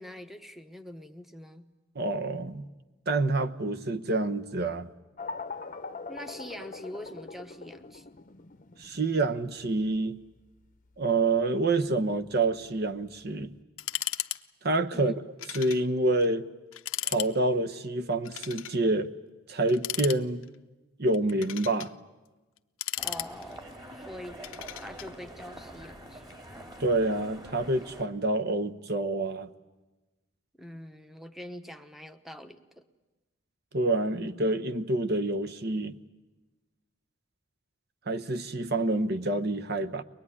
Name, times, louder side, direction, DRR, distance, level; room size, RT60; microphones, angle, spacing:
voice 1, 0.0-1.7 6.1-8.1 14.9-15.2 23.0-24.4 24.7-26.2 30.6-32.8, equal, ahead, 8 dB, 1.0 m, -44 dB
voice 2, 1.9-2.7 3.1-4.9 8.8-10.2 11.0-13.5 14.6-15.1 15.5-16.5 17.0-19.1 19.5-20.5 21.0-21.9 26.8-29.5 33.7-36.0 38.1-40.0, right 2 dB, 50° right, 11 dB, 1.0 m, -27 dB
sound 1, 5.2-13.6, left 4 dB, 40° left, 0.8 m, -43 dB
sound 2, 13.8-14.4 14.7-14.8 15.4-15.8 16.2-16.3 16.7-17.3 18.2-18.8 19.7-20.6 21.1-21.9 22.6-23.7 24.4-25.1, left 14 dB, 85° left, 0.8 m, -35 dB
sound 3, 23.0-28.1, right 1 dB, 20° right, 2.4 m, -45 dB
23.0 x 20.5 x 9.8 m, 1.1 s
head